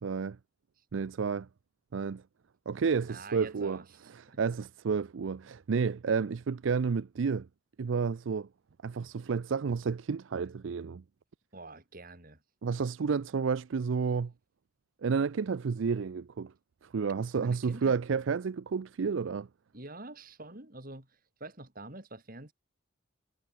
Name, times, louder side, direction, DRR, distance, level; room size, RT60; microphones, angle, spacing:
voice 1, 0.0-0.4 0.9-1.5 1.9-2.2 2.7-3.8 4.1-7.5 7.8-8.5 8.8-11.0 12.6-14.3 15.0-16.5 16.9-19.5, right 5 dB, 70° right, 0.4 m, -31 dB
voice 2, 3.1-4.4 11.5-12.4 17.3-17.9 19.7-22.5, right 2 dB, 45° right, 4.2 m, -47 dB
head